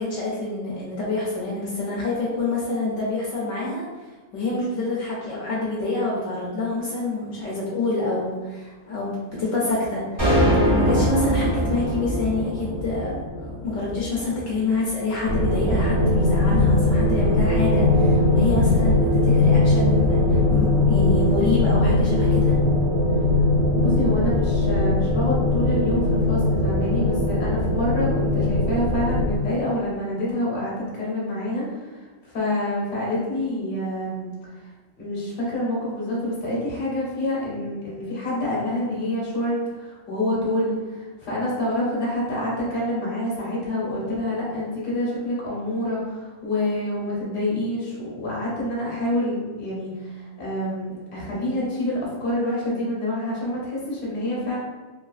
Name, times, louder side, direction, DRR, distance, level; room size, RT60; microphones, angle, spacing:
voice 1, 0.0-3.8 4.3-10.3 10.6-22.6, left 3 dB, 75° left, -5 dB, 0.9 m, -27 dB
sound 1, 10.2-14.6, equal, 25° right, 0.5 m, -23 dB
sound 2, 15.3-29.4, left 2 dB, 90° right, 1.0 m, -20 dB
voice 2, 23.8-34.3 35.0-54.6, left 1 dB, 45° left, -6 dB, 1.0 m, -27 dB
3.0 x 2.3 x 2.3 m, 1.3 s
omnidirectional pair, 1.4 m